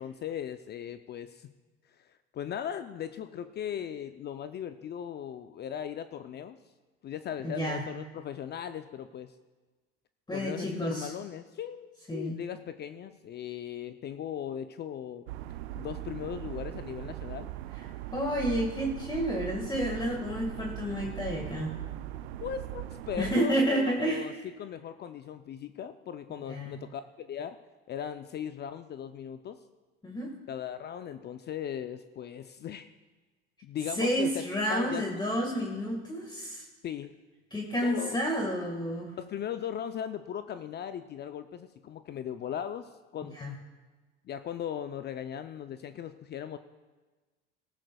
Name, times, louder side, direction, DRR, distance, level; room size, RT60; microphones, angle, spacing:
voice 1, 0.0-1.5 1.9-6.6 7.0-9.3 10.3-15.3 15.7-17.5 22.4-24.3 24.6-27.6 27.9-29.6 30.5-32.9 33.6-34.3 34.7-35.0 36.8-37.1 37.8-38.2 39.2-43.4 44.2-46.6, left 9 dB, 30° left, 10 dB, 0.5 m, -38 dB
voice 2, 7.4-7.8 10.3-11.1 12.1-12.4 17.8-21.8 23.2-24.3 26.5-26.8 30.0-30.3 33.9-36.6 37.5-39.1 43.2-43.5, equal, 15° left, 0 dB, 1.7 m, -30 dB
sound 1, 15.3-23.4, right 14 dB, 80° right, 0.5 m, -40 dB
18.0 x 14.5 x 2.3 m, 1.3 s
hypercardioid pair, 90°, 32 cm